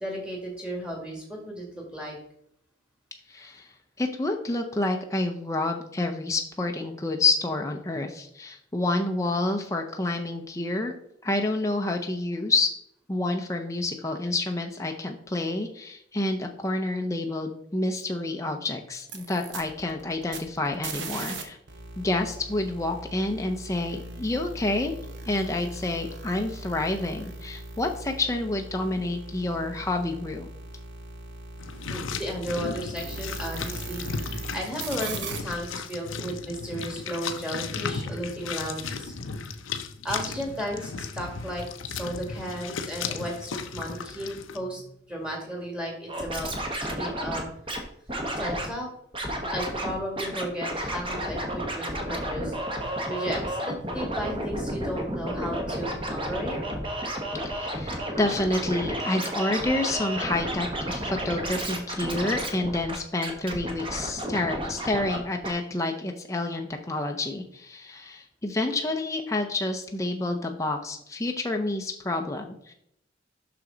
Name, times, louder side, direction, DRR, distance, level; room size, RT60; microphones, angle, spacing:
voice 1, 0.0-2.2 31.9-39.1 40.0-46.5 46.8-47.5 48.4-48.9 49.5-56.6, equal, 5° right, -1 dB, 1.8 m, -34 dB
voice 2, 3.3-3.7 4.0-10.9 11.2-12.7 13.1-21.6 22.0-25.0 25.3-30.5 57.3-72.7, left 2 dB, 15° left, 3 dB, 0.5 m, -28 dB
sound 1, 19.0-21.4 21.7-34.5 34.8-35.5, right 2 dB, 65° right, 1.0 m, -39 dB
sound 2, 31.6-44.6, left 5 dB, 90° left, 0.6 m, -35 dB
Scratching (performance technique), 46.1-47.8 48.1-48.7 49.1-49.9 50.2-65.2 65.4-65.5, right 1 dB, 25° right, 1.1 m, -32 dB
6.2 x 6.0 x 3.8 m, 0.73 s
head